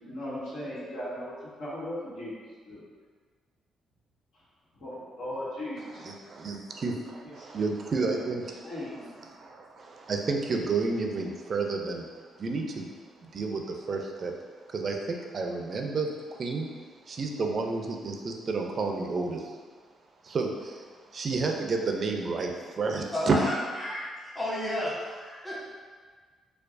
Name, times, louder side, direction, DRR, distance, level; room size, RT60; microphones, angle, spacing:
voice 1, 0.0-2.3 2.6-2.8 4.7-6.0 7.2-7.3 8.1-8.3 8.6-9.0, left 1 dB, 85° left, -10 dB, 1.4 m, -37 dB
voice 2, 6.0-8.7 9.0-12.1 12.4-12.9 13.3-14.3 14.7-16.7 17.1-19.5 20.2-20.9 21.1-23.4, right 4 dB, 45° right, 2 dB, 0.4 m, -31 dB
voice 3, 23.1-25.6, left 1 dB, 15° left, -7 dB, 1.2 m, -32 dB
4.5 x 2.3 x 2.5 m, 1.5 s
cardioid pair, 90°, 0 cm